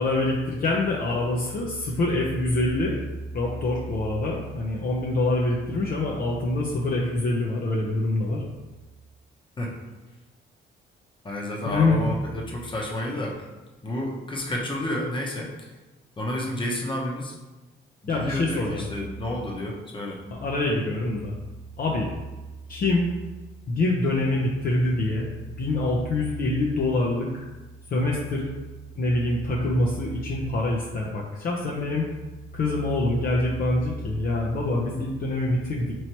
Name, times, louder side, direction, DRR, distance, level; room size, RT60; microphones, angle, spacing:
voice 1, 0.0-3.0 3.3-8.4 11.7-12.0 18.1-18.8 20.4-21.3 21.8-22.1 22.7-23.1 23.7-25.3 25.6-27.5 27.9-28.5 29.0-32.1 32.5-35.9, left 2 dB, 45° left, -3 dB, 0.6 m, -25 dB
voice 2, 11.2-13.3 13.8-15.7 16.2-17.3 18.0-20.2, left 1 dB, 25° left, -2 dB, 1.0 m, -30 dB
3.1 x 2.8 x 4.4 m, 1.1 s
cardioid pair, 90°, 20 cm